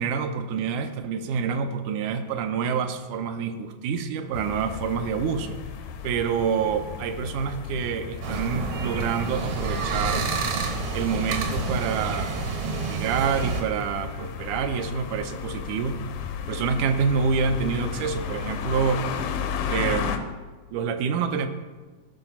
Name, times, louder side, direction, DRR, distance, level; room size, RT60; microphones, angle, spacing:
voice 1, 0.0-5.6 6.0-10.3 10.9-12.3 12.6-16.0 16.5-19.1 19.7-20.3 20.7-21.5, right 6 dB, 80° right, 8 dB, 2.0 m, -27 dB
sound 1, 4.3-20.2, left 7 dB, 75° left, 2.0 m, -34 dB
sound 2, 8.2-13.6, right 4 dB, 60° right, 1.5 m, -29 dB
14.0 x 4.9 x 5.8 m, 1.3 s
omnidirectional pair, 3.6 m